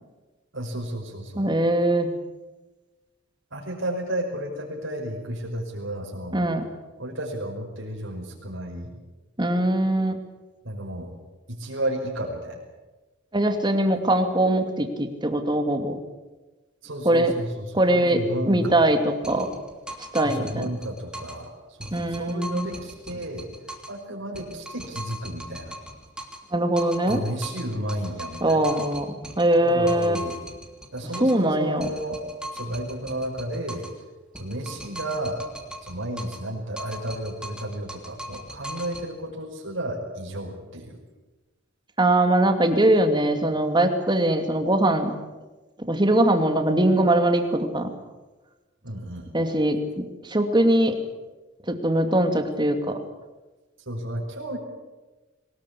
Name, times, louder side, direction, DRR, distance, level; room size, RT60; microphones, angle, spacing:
voice 1, 0.5-1.5 3.5-6.5 7.0-8.9 10.6-11.1 11.5-12.6 16.8-18.8 20.2-21.5 21.8-23.5 23.9-25.8 27.1-28.7 29.7-30.4 30.9-32.2 32.5-33.9 34.4-35.5 35.8-41.0 48.8-49.3 53.9-54.6, right 1 dB, 75° right, -1 dB, 5.5 m, -32 dB
voice 2, 1.4-2.1 6.3-6.7 9.4-10.2 13.3-16.0 17.0-17.3 17.7-18.2 18.5-19.5 20.0-20.7 21.9-22.7 26.5-27.2 28.4-30.2 31.2-31.9 42.0-45.1 45.9-47.9 49.3-50.9 51.7-53.0, right 1 dB, 25° right, 6 dB, 2.5 m, -22 dB
sound 1, 19.2-21.5 21.8-24.0 24.3-26.5 26.8-31.5 31.8-34.0 34.3-36.5 36.8-39.1, equal, 5° right, 3.2 m, -39 dB
23.0 x 20.0 x 8.5 m, 1.2 s
head